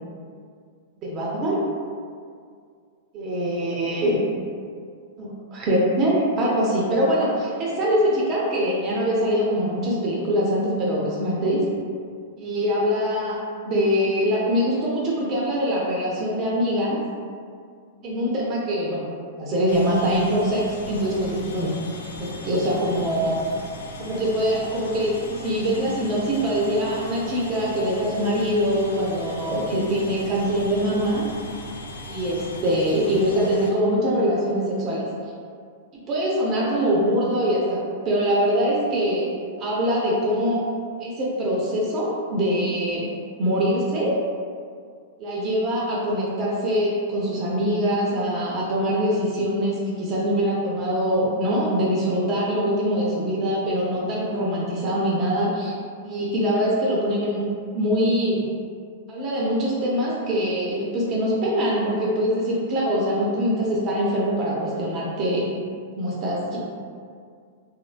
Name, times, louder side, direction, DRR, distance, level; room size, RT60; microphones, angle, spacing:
voice 1, 1.0-1.6 3.1-4.2 5.2-11.7 12.4-17.0 18.0-19.1 19.4-21.8 22.2-23.3 24.0-25.1 25.4-31.3 32.1-35.1 36.1-37.8 38.0-39.3 39.6-40.7 41.0-43.0 43.4-44.2 45.2-55.8 56.0-57.5 57.7-58.4 59.1-65.5 66.0-66.6, equal, 30° right, -5 dB, 0.5 m, -23 dB
sound 1, 19.7-33.7, left 1 dB, 90° left, 0.4 m, -38 dB
2.8 x 2.2 x 2.4 m, 2.1 s
hypercardioid pair, 145°, 0 cm